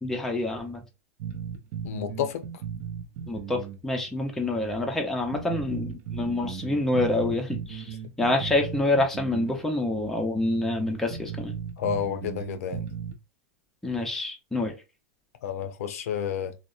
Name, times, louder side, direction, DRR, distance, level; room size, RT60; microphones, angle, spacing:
voice 1, 0.0-0.8 3.3-11.5 13.8-14.7, left 2 dB, 5° left, 0.5 m, -27 dB
sound 1, 1.2-3.8 4.1-4.2 4.8-4.9 5.3-9.6 9.9-10.0 10.6-10.7 11.1-13.2, right 7 dB, 50° right, 0.5 m, -36 dB
voice 2, 1.8-2.4 11.8-12.9 15.4-16.5, left 8 dB, 75° left, 0.5 m, -30 dB
2.7 x 2.0 x 2.3 m
supercardioid pair, 145°, 8 cm